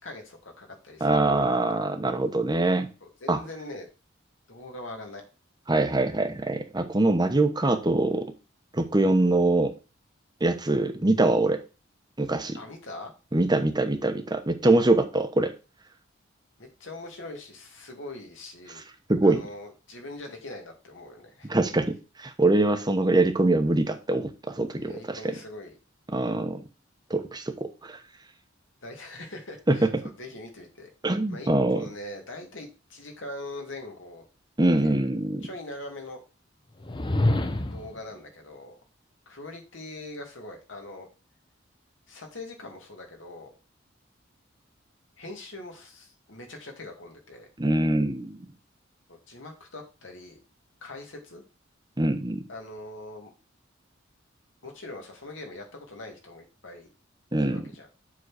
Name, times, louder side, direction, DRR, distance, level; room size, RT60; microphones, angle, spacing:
voice 1, 0.0-1.5 3.0-3.9 4.5-5.2 12.5-13.1 16.6-18.8 19.2-21.5 24.8-25.7 28.8-30.9 31.3-34.2 34.8-35.1 35.4-36.2 37.7-38.8 39.3-41.1 42.1-43.5 45.2-47.5 49.1-50.4 50.8-51.4 52.5-53.3 54.6-56.9 57.4-57.9, left 2 dB, 75° left, 2 dB, 2.4 m, -42 dB
voice 2, 1.0-2.9 3.3-3.4 5.7-8.2 8.7-9.7 10.4-11.6 12.2-12.6 13.3-15.5 19.1-19.4 21.5-21.9 22.2-25.3 26.1-26.6 27.1-28.0 29.7-29.9 31.0-31.9 34.6-35.5 47.6-48.5 52.0-52.4 57.3-57.6, right 2 dB, 20° right, 7 dB, 1.0 m, -23 dB
sound 1, 36.8-38.0, left 1 dB, 25° left, 0.7 m, -26 dB
7.3 x 4.0 x 6.3 m, 0.31 s
head